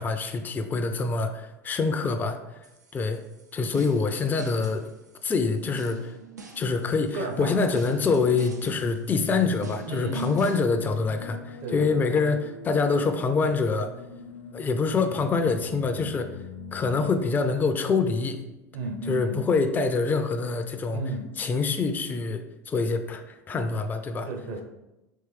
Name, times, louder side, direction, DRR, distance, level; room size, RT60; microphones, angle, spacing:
voice 1, 0.0-2.4 2.9-3.2 3.5-4.9 5.2-6.2 6.6-13.9 14.5-16.3 16.7-18.5 19.1-21.0 21.4-24.3, left 4 dB, 20° left, 7 dB, 0.4 m, -25 dB
sound 1, 2.6-10.6, right 3 dB, 85° right, 0.5 m, -48 dB
sound 2, 5.6-18.0, right 4 dB, 30° right, 0.5 m, -48 dB
voice 2, 7.1-7.7 8.1-8.2 9.8-10.5 11.6-12.0 16.8-17.0 18.7-19.4 20.9-21.3 24.3-24.6, right 2 dB, 60° right, 4 dB, 0.9 m, -33 dB
sound 3, 8.6-18.5, left 5 dB, 55° left, 0.7 m, -43 dB
4.3 x 3.2 x 3.3 m, 0.98 s
figure-of-eight pair, 80°, 9 cm